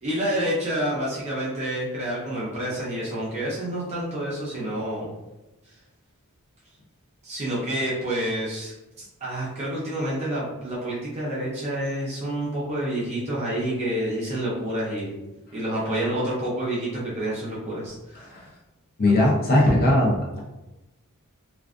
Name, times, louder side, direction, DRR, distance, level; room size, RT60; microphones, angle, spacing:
voice 1, 0.0-5.1 7.2-15.2 15.5-18.2, right 1 dB, 30° right, -7 dB, 0.6 m, -28 dB
voice 2, 19.0-20.4, left 1 dB, 45° left, -3 dB, 0.7 m, -19 dB
2.4 x 2.3 x 2.4 m, 0.98 s
head